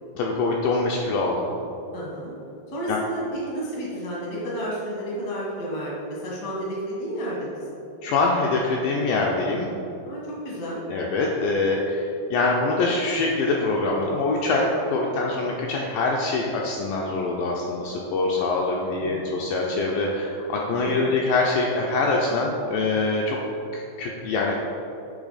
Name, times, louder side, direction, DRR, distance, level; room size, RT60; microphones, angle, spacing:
voice 1, 0.2-1.5 2.9-3.0 8.0-9.7 10.9-23.4 23.7-24.6, left 3 dB, 85° left, -2 dB, 2.0 m, -24 dB
voice 2, 1.9-2.3 2.7-7.5 10.0-10.9 18.8-19.3 20.7-20.9, equal, 60° left, -6 dB, 0.9 m, -31 dB
8.2 x 3.3 x 4.0 m, 2.8 s
omnidirectional pair, 4.3 m